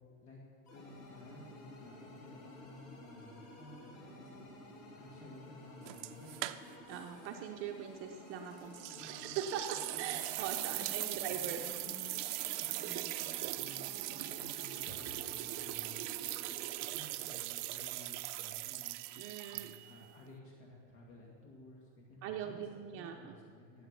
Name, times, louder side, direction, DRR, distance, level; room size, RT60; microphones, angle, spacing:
sound 1, 0.6-16.7, left 1 dB, 45° left, 3.3 m, -53 dB
voice 1, 0.7-4.5 4.9-6.5 8.9-9.4 9.7-10.2 10.7-12.2 12.5-13.9 14.2-16.4 16.8-19.1 19.5-22.6 22.9-23.9, left 1 dB, 65° left, -2 dB, 2.4 m, -54 dB
sound 2, 5.9-7.0 7.2-7.3 8.7-20.0, right 18 dB, 80° right, 0.6 m, -40 dB
voice 2, 6.9-8.8 9.0-11.6 19.2-19.7 22.2-23.4, right 8 dB, 40° right, 2 dB, 0.6 m, -41 dB
14.0 x 8.2 x 6.8 m, 2.1 s
cardioid pair, 180°, 35 cm